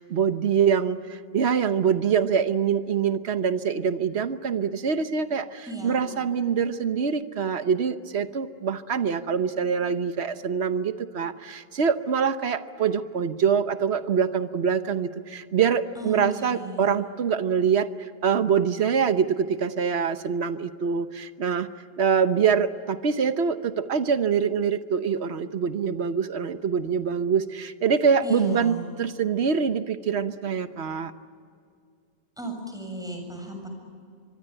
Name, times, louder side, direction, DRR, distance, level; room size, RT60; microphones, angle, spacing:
voice 1, 0.0-21.7 22.0-31.1, right 6 dB, 85° right, 10 dB, 1.3 m, -25 dB
voice 2, 5.7-6.1 16.0-16.9 28.2-28.8 32.4-33.7, right 1 dB, 5° right, 3 dB, 7.4 m, -35 dB
25.5 x 23.5 x 9.0 m, 2.3 s
omnidirectional pair, 1.1 m